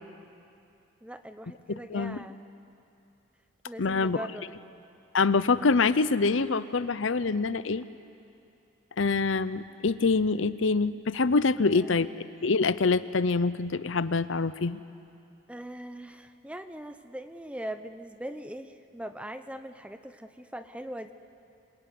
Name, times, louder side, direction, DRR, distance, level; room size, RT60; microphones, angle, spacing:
voice 1, 1.0-2.4 3.6-4.6 11.7-11.9 15.5-21.1, right 1 dB, 5° right, 9 dB, 0.8 m, -41 dB
voice 2, 1.9-2.2 3.8-4.2 5.1-7.8 9.0-12.1 12.4-14.8, left 4 dB, 70° left, 14 dB, 0.7 m, -25 dB
27.0 x 22.0 x 9.5 m, 2.6 s
head